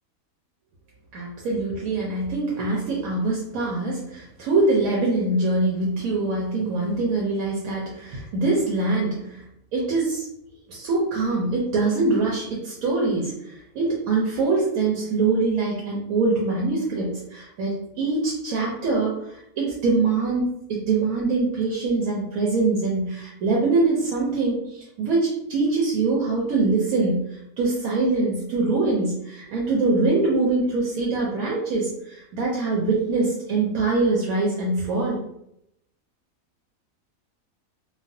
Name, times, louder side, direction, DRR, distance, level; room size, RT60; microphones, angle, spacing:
voice 1, 1.1-9.4 9.7-10.3 10.7-35.2, right 3 dB, 85° right, -4 dB, 1.1 m, -24 dB
3.1 x 2.2 x 2.6 m, 0.78 s
omnidirectional pair, 1.5 m